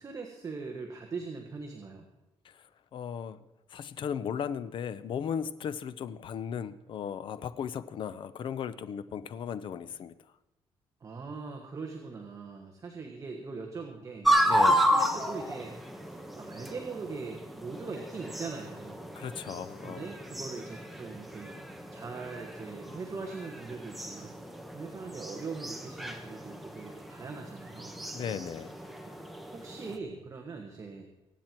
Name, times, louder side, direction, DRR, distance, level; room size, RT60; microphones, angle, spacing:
voice 1, 0.0-2.0 11.0-14.3 14.7-15.7 16.0-19.0 19.8-21.6 21.9-24.3 24.7-27.9 29.0-29.1 29.5-31.1, right 4 dB, 30° right, 2 dB, 1.5 m, -41 dB
voice 2, 2.9-3.4 3.7-10.1 14.5-14.8 19.1-20.1 28.1-28.7, left 8 dB, 55° left, 14 dB, 0.7 m, -36 dB
sound 1, 14.2-30.0, equal, ahead, 1.2 m, -32 dB
23.0 x 9.3 x 4.5 m, 1.0 s
cardioid pair, 150°, 10 cm